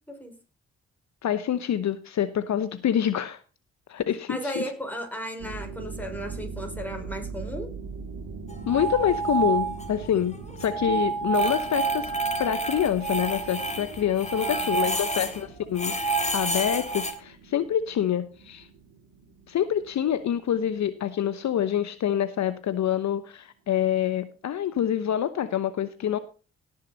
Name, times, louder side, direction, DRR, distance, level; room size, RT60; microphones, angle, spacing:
voice 1, 0.1-0.4 4.3-7.7 14.3-14.7, equal, 5° left, 4 dB, 4.6 m, -35 dB
voice 2, 1.2-3.4 3.9-4.6 8.7-12.1 12.4-18.7 19.5-26.2, left 10 dB, 55° left, 13 dB, 0.9 m, -26 dB
sound 1, 5.4-22.0, right 4 dB, 75° right, 1.8 m, -42 dB
sound 2, 8.5-10.1 10.3-15.4 15.7-17.1, right 3 dB, 20° left, 2.8 m, -28 dB
17.5 x 6.7 x 4.0 m, 0.35 s
hypercardioid pair, 40°, 32 cm